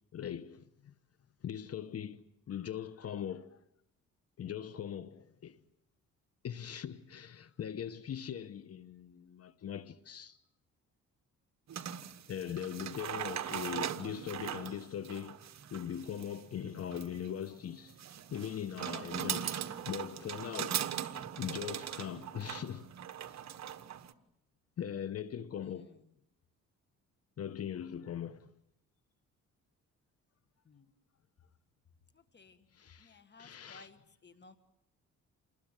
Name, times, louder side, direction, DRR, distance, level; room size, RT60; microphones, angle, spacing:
voice 1, 0.1-0.9 1.4-3.6 4.4-5.6 6.4-10.4 12.3-15.4 15.7-18.0 18.3-22.9 23.3-23.5 24.8-25.9 27.4-28.5 32.7-33.9, left 9 dB, 50° left, 1.0 m, -41 dB
sound 1, 11.7-24.1, right 10 dB, 60° right, 1.4 m, -40 dB
voice 2, 25.6-26.0 30.6-30.9 32.1-32.7 33.0-34.5, left 3 dB, 35° left, 1.7 m, -58 dB
28.5 x 20.0 x 9.0 m
cardioid pair, 100°, 31 cm